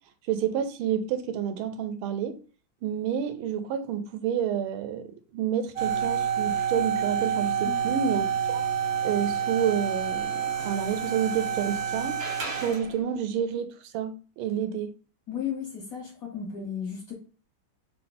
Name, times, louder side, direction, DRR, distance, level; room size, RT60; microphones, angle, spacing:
voice 1, 0.3-2.4 2.8-5.1 5.3-8.6 9.0-12.2 12.5-14.9, right 8 dB, 80° right, 1.4 m, -29 dB
sound 1, 5.8-13.0, right 8 dB, 45° right, 0.8 m, -28 dB
voice 2, 15.3-17.1, left 8 dB, 50° left, 1.2 m, -34 dB
5.6 x 2.0 x 3.9 m
omnidirectional pair, 2.3 m